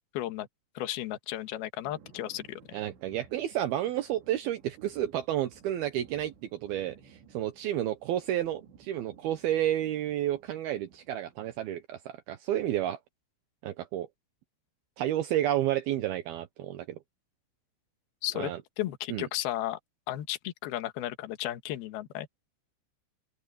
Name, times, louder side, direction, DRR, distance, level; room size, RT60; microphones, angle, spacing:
voice 1, 0.1-0.5 0.7-2.8 18.2-18.5 18.8-19.8 20.1-22.3, left 14 dB, 60° left, 2.9 m, -34 dB
sound 1, 1.8-11.8, right 7 dB, 60° right, 4.8 m, -57 dB
voice 2, 2.7-13.0 13.6-14.1 15.0-17.0 18.3-18.6 19.1-19.3, right 12 dB, 80° right, 2.2 m, -31 dB
open air
omnidirectional pair, 5.9 m